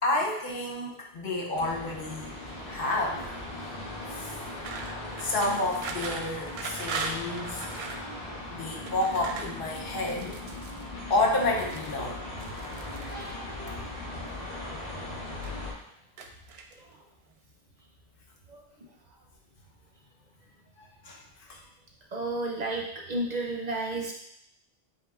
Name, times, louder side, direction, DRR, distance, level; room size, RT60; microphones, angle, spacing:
voice 1, 0.0-2.3 2.7-3.3 4.1-4.4 5.2-7.7 8.5-10.4 11.1-12.2 20.8-21.2 21.5-21.6, left 2 dB, 65° left, -1 dB, 1.0 m, -30 dB
sound 1, 1.5-15.7, left 1 dB, 85° left, 1.4 m, -39 dB
sound 2, 4.6-8.1 8.7-10.8 11.3-12.0 12.4-13.3 14.2-14.9 15.2-15.8 16.2-16.9, right 4 dB, 90° right, 0.8 m, -39 dB
voice 2, 22.1-24.1, right 2 dB, 50° right, 0 dB, 0.6 m, -32 dB
7.7 x 2.8 x 2.3 m, 0.75 s
omnidirectional pair, 1.0 m